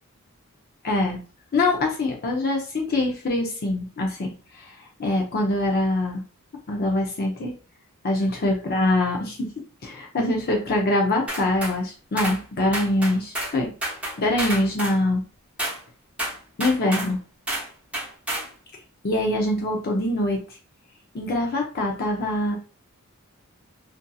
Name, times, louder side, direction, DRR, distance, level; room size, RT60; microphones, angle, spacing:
voice 1, 0.8-1.2 1.5-4.3 4.6-6.2 6.7-7.5 8.0-9.5 9.8-13.7 14.2-15.2 16.6-17.2 19.0-20.4 21.1-22.6, left 1 dB, 45° left, 1 dB, 0.5 m, -24 dB
sound 1, 11.3-11.8 12.2-12.4 12.7-13.6 13.8-15.0 15.6-15.8 16.2-17.1 17.5-17.7 17.9-18.5, right 1 dB, 5° right, 0.8 m, -29 dB
2.6 x 2.6 x 2.3 m, 0.35 s
head